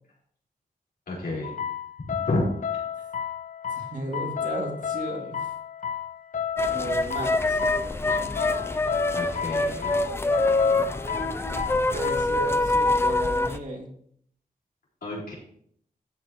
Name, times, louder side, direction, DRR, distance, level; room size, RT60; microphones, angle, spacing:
voice 1, 1.1-1.5 2.0-2.5 9.1-9.9 15.0-15.3, left 2 dB, 80° left, -4 dB, 4.6 m, -30 dB
sound 1, 1.4-12.3, left 8 dB, 60° left, 0.7 m, -32 dB
voice 2, 3.7-5.4 6.7-7.6 8.2-8.3 11.9-13.9, right 2 dB, 60° right, 0 dB, 2.4 m, -34 dB
sound 2, 6.6-13.6, left 2 dB, 15° left, 0.5 m, -25 dB
13.5 x 8.6 x 3.0 m, 0.64 s
wide cardioid pair, 155°, 15 cm